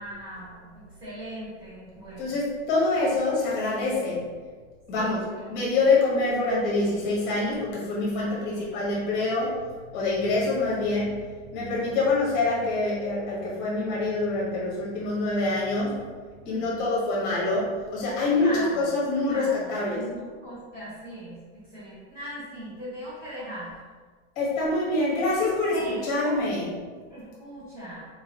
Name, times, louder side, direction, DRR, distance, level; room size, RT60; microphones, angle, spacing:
voice 1, 0.0-2.4 4.9-5.4 8.2-8.8 16.4-17.0 18.3-23.8 25.7-26.4 27.1-28.1, right 1 dB, 10° right, -12 dB, 1.2 m, -39 dB
voice 2, 2.2-4.2 4.9-5.2 5.5-9.6 9.9-11.2 11.5-16.0 16.4-20.0 24.4-26.7, left 2 dB, 25° left, -6 dB, 1.0 m, -25 dB
3.7 x 2.8 x 2.7 m, 1.5 s
supercardioid pair, 180°, 35 cm